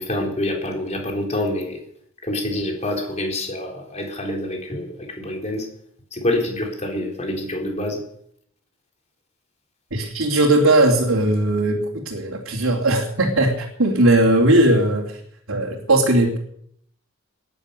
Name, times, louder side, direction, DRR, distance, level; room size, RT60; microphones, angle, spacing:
voice 1, 0.0-1.8 2.2-5.7 6.1-8.0, left 1 dB, 35° left, 2 dB, 3.8 m, -26 dB
voice 2, 9.9-15.2 15.5-16.4, right 1 dB, 75° right, -4 dB, 3.0 m, -18 dB
18.0 x 11.0 x 6.8 m, 0.69 s
head